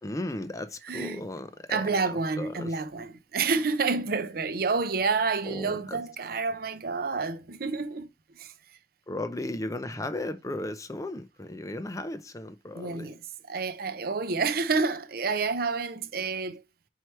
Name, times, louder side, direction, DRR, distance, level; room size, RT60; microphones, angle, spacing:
voice 1, 0.0-2.8 5.4-6.0 9.1-13.1, left 1 dB, 20° left, 0.5 m, -36 dB
voice 2, 0.9-1.2 1.7-8.1 8.4-8.5 12.7-13.2 13.5-16.6, right 4 dB, 55° right, 0.6 m, -29 dB
4.6 x 4.6 x 4.5 m
head